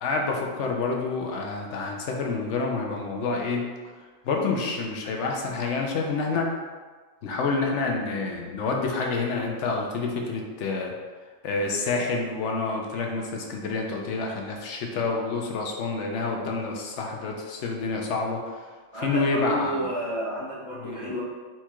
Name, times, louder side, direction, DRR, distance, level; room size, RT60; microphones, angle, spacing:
voice 1, 0.0-3.7 4.2-6.5 7.2-10.9 11.4-18.4 18.9-19.8 20.8-21.1, left 4 dB, 65° left, 1 dB, 1.0 m, -28 dB
voice 2, 18.9-21.2, equal, 30° left, -9 dB, 0.7 m, -30 dB
4.5 x 2.4 x 4.4 m, 1.4 s
omnidirectional pair, 1.4 m